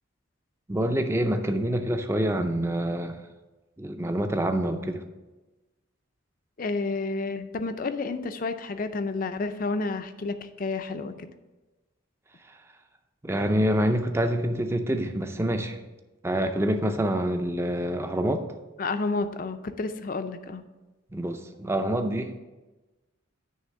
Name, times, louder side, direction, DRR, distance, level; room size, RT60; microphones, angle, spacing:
voice 1, 0.7-3.2 3.8-5.0 13.2-15.8 16.2-18.4 21.1-22.4, right 1 dB, 10° right, 6 dB, 0.5 m, -26 dB
voice 2, 6.6-11.3 18.8-20.6, left 3 dB, 40° left, 10 dB, 0.4 m, -30 dB
9.4 x 3.4 x 6.6 m, 1.1 s
head